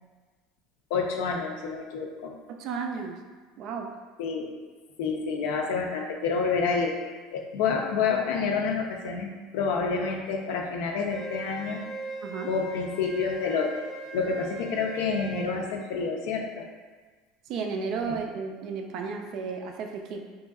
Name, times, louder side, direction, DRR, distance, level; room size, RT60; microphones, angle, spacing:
voice 1, 0.9-2.3 4.2-4.5 5.0-6.9 7.3-11.8 12.5-13.7 14.1-16.6, left 5 dB, 75° left, 1 dB, 0.4 m, -28 dB
voice 2, 2.5-3.2 3.6-3.9 12.2-12.5 17.5-20.2, right 5 dB, 55° right, 3 dB, 0.3 m, -33 dB
Wind instrument woodwind instrument, 11.1-15.5, right 2 dB, 20° left, 0.7 m, -40 dB
3.0 x 2.6 x 2.3 m, 1.4 s
supercardioid pair, 125°, 0 cm